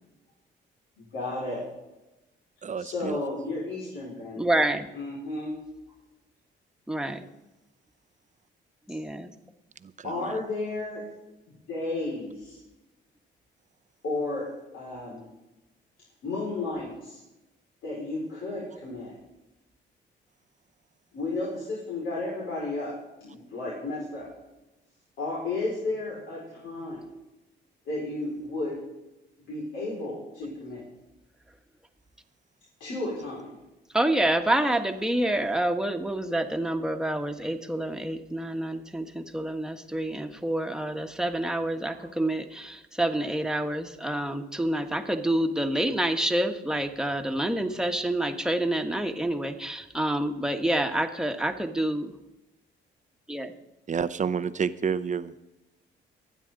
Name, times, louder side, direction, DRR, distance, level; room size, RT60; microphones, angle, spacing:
voice 1, 1.1-1.6 2.8-4.4 4.9-5.5 10.0-11.0 11.7-12.6 14.0-14.5 14.7-15.3 16.2-17.2 17.8-19.1 21.1-24.3 25.2-27.0 27.8-28.8 29.4-30.8 32.8-33.5 41.9-42.0, left 2 dB, 80° left, -6 dB, 5.0 m, -33 dB
voice 2, 2.6-3.2 9.8-10.3 53.9-55.4, right 6 dB, 40° right, 12 dB, 0.7 m, -30 dB
voice 3, 4.4-4.9 6.9-7.2 8.9-9.3 33.9-52.1 53.3-53.5, right 1 dB, 5° right, 5 dB, 1.4 m, -28 dB
24.0 x 9.3 x 3.9 m, 1.0 s
cardioid pair, 90°, 20 cm